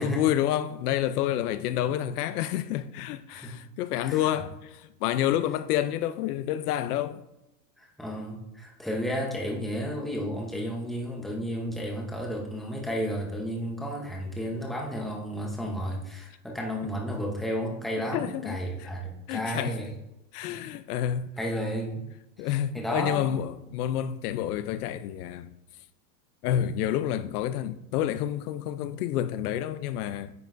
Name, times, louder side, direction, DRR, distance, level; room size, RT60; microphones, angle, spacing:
voice 1, 0.0-7.2 18.1-18.9 19.3-19.8 20.3-21.3 22.4-25.6 26.4-30.3, left 11 dB, 70° left, 0.6 m, -29 dB
voice 2, 7.8-19.9 20.5-20.6 21.4-22.0 22.4-23.2, equal, ahead, 0.8 m, -32 dB
9.3 x 5.4 x 2.6 m
supercardioid pair, 145°, 47 cm